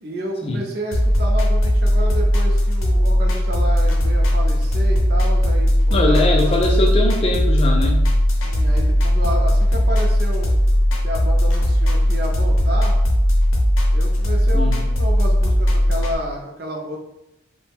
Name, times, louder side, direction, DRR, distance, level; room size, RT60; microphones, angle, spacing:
voice 1, 0.0-6.6 8.4-10.5 11.0-13.0 13.9-17.0, equal, 50° right, 1 dB, 0.5 m, -30 dB
sound 1, 0.9-16.1, equal, 80° left, 0.6 m, -17 dB
voice 2, 5.9-8.0 14.5-14.8, left 2 dB, 30° left, 0 dB, 0.4 m, -21 dB
2.5 x 2.1 x 3.4 m, 0.89 s
head